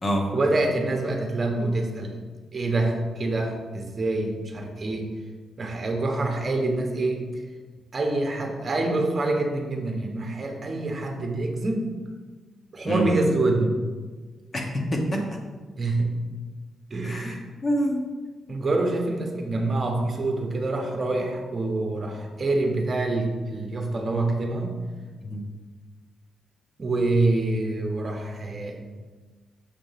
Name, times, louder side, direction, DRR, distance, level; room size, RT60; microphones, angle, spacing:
voice 1, 0.3-2.2 2.5-5.1 5.6-7.3 7.9-11.9 12.7-13.8 15.8-16.2 16.9-17.4 18.5-24.8 26.8-28.8, right 2 dB, 30° right, 2 dB, 1.2 m, -26 dB
voice 2, 14.5-15.4 17.0-18.0 25.2-25.5, equal, 30° left, 1 dB, 1.2 m, -27 dB
6.8 x 4.3 x 5.8 m, 1.4 s
wide cardioid pair, 145°, 0 cm